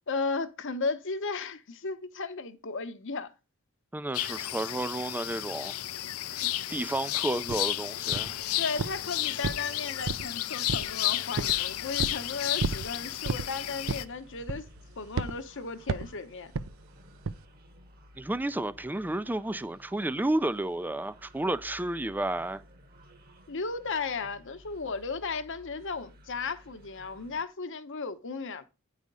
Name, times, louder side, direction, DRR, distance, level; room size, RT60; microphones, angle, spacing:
voice 1, 0.1-3.3 8.6-14.7 15.0-16.5 23.5-28.6, left 4 dB, 60° left, 0.9 m, -35 dB
voice 2, 3.9-5.7 6.3-6.4 6.7-8.4 18.2-22.6, right 1 dB, 10° right, 0.4 m, -31 dB
sound 1, 4.1-14.0, left 14 dB, 75° left, 0.5 m, -32 dB
sound 2, 7.5-7.6 8.1-8.4 8.8-9.1 9.4-10.3 10.7-11.0 11.4-11.6 12.0-12.2 12.6-12.9 13.2-13.5 13.9-14.1 14.5-14.8 15.2-15.4 15.9-16.1 16.5-16.7 17.2-17.4, right 4 dB, 65° right, 0.6 m, -31 dB
sound 3, 11.5-27.4, left 1 dB, 45° right, 1.3 m, -55 dB
9.3 x 4.9 x 5.4 m
head